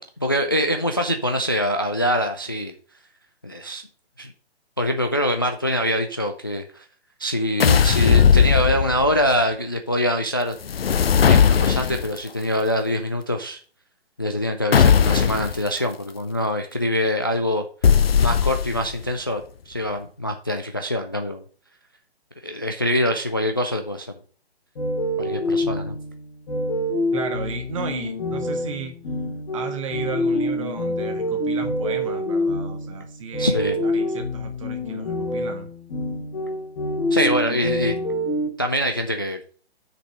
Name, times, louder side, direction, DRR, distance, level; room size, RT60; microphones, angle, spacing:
voice 1, 0.2-2.7 3.4-3.8 4.2-4.3 4.8-6.8 7.2-10.6 11.2-13.6 14.2-17.6 18.2-21.4 22.4-24.1 25.2-26.0 33.4-33.8 37.1-38.0 38.6-39.4, equal, 20° left, 5 dB, 0.3 m, -24 dB
sound 1, 7.6-9.2 10.6-12.2 14.7-15.6 17.8-18.9, left 7 dB, 65° left, 0.6 m, -17 dB
sound 2, 24.7-38.5, left 1 dB, 45° left, 2.1 m, -26 dB
voice 2, 27.1-28.9 29.5-35.7, right 6 dB, 30° right, 6 dB, 1.0 m, -34 dB
6.2 x 5.1 x 6.0 m, 0.42 s
figure-of-eight pair, 135°, 33 cm